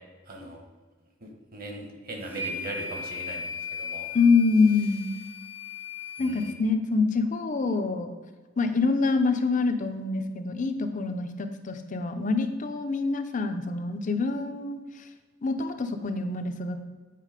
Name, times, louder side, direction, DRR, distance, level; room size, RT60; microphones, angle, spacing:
voice 1, 0.3-0.6 1.2-3.4 3.8-4.1 6.2-6.5, right 1 dB, 45° right, 2 dB, 1.3 m, -39 dB
sound 1, 2.3-6.5, left 4 dB, 10° right, 0.5 m, -37 dB
voice 2, 4.1-5.1 6.2-8.1 8.6-14.8 15.4-16.9, left 4 dB, 40° left, 8 dB, 0.6 m, -25 dB
8.4 x 4.1 x 5.0 m, 1.4 s
head